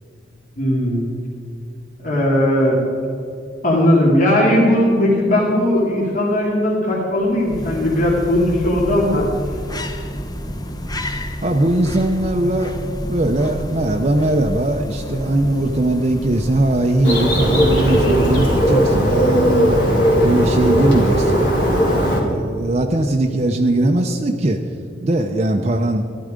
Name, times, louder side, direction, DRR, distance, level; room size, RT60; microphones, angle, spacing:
voice 1, 0.6-1.0 2.0-2.8 3.6-9.3, left 1 dB, 45° left, -4 dB, 2.6 m, -17 dB
sound 1, 7.2-19.0, equal, 20° left, 0.8 m, -29 dB
voice 2, 11.4-12.8 13.1-19.8 20.2-24.6 25.0-26.1, right 1 dB, 35° right, 3 dB, 0.7 m, -20 dB
Bird, 17.0-22.2, equal, 65° left, 3.0 m, -17 dB
15.0 x 12.0 x 5.1 m, 2.6 s
head